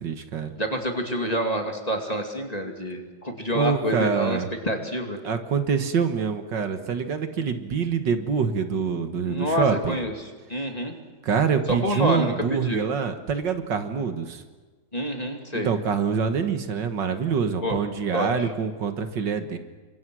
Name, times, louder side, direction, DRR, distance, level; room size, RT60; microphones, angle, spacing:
voice 1, 0.0-0.5 3.5-4.5 5.2-10.0 11.2-14.4 15.5-19.6, right 6 dB, 70° right, 8 dB, 2.2 m, -25 dB
voice 2, 0.6-4.4 4.6-5.2 9.3-10.1 10.5-11.0 11.7-12.8 14.9-15.7 17.6-17.8 18.1-18.5, equal, 20° left, 3 dB, 2.6 m, -27 dB
29.5 x 25.0 x 6.3 m, 1.3 s
omnidirectional pair, 2.0 m